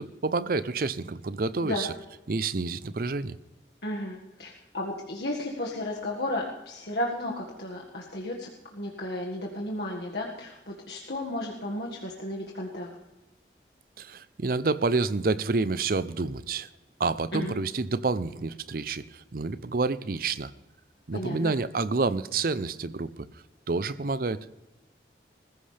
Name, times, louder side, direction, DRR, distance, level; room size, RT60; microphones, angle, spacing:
voice 1, 0.0-1.9 2.3-3.4 14.0-16.7 17.0-20.5 21.1-23.3 23.7-24.5, right 3 dB, 50° right, 16 dB, 0.6 m, -28 dB
voice 2, 3.8-12.9 17.3-17.5 21.1-21.5, left 1 dB, 65° left, -2 dB, 1.8 m, -33 dB
20.5 x 15.0 x 3.4 m, 0.99 s
head